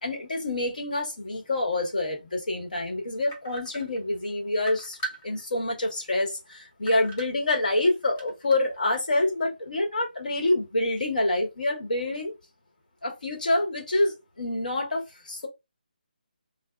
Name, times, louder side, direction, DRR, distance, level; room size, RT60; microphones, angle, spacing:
voice 1, 0.0-5.0 5.2-12.3 13.0-15.5, left 2 dB, 60° left, 1.1 m, -27 dB
sound 1, 3.3-4.2 4.6-5.7 6.1-6.2 6.9-7.8 8.2-8.8, right 2 dB, 15° left, 0.5 m, -39 dB
4.0 x 2.1 x 2.3 m
hypercardioid pair, 175°, 5 cm